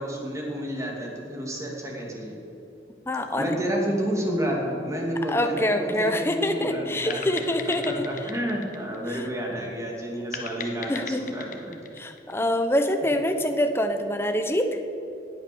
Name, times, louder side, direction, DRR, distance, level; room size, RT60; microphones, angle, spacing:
voice 1, 0.0-2.3 3.4-11.8, equal, 15° right, -1 dB, 2.7 m, -30 dB
voice 2, 3.1-3.5 5.3-8.1 9.1-9.3 10.9-11.4 11.9-14.8, left 1 dB, 15° left, 6 dB, 0.9 m, -25 dB
sound 1, 7.1-9.6 10.3-12.9, left 6 dB, 45° left, 1.1 m, -39 dB
17.0 x 9.2 x 7.0 m, 2.9 s
head